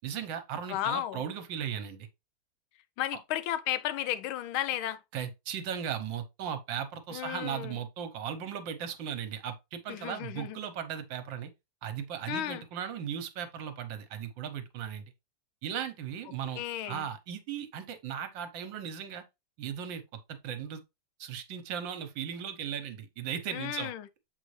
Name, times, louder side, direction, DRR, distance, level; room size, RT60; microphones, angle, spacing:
voice 1, 0.0-2.1 5.1-11.5 11.8-15.1 15.6-16.6 16.9-19.2 19.6-20.0 20.3-20.8 21.2-23.9, right 8 dB, 70° right, 1.5 m, -37 dB
voice 2, 0.7-1.2 3.0-5.0 7.1-7.8 9.9-10.6 12.3-12.6 16.6-17.0 23.5-24.1, left 12 dB, 90° left, 1.4 m, -33 dB
7.4 x 4.1 x 3.1 m
omnidirectional pair, 2.2 m